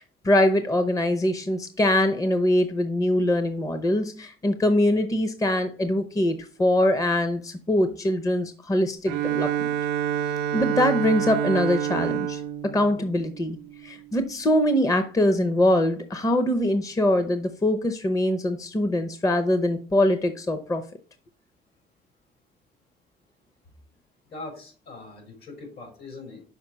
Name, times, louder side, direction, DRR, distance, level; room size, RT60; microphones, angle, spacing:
voice 1, 0.0-9.7 10.5-12.4 12.7-13.6 13.8-20.8, left 1 dB, 20° left, 8 dB, 0.7 m, -23 dB
Bowed string instrument, 9.1-13.8, right 10 dB, 80° right, 0.5 m, -28 dB
voice 2, 24.3-26.4, left 3 dB, 70° left, 3 dB, 3.7 m, -41 dB
5.9 x 4.6 x 5.5 m, 0.40 s
cardioid pair, 110°, 17 cm